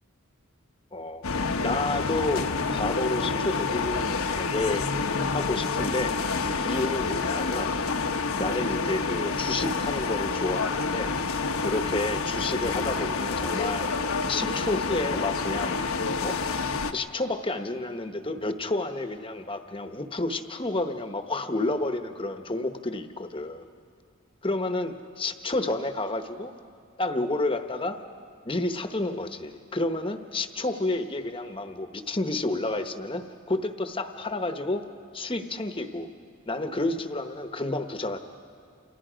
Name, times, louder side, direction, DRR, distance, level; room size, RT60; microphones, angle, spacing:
voice 1, 0.9-1.2 1.6-4.9 5.3-6.2 6.4-7.8 8.4-11.1 11.6-13.9 14.3-15.8 16.2-16.4 16.9-23.7 24.4-26.5 27.0-28.0 28.4-34.8 35.1-36.1 36.5-38.2, left 2 dB, 25° left, 7 dB, 1.0 m, -30 dB
sound 1, 1.2-16.9, left 4 dB, 75° left, 1.1 m, -28 dB
29.0 x 28.0 x 5.1 m, 2.3 s
head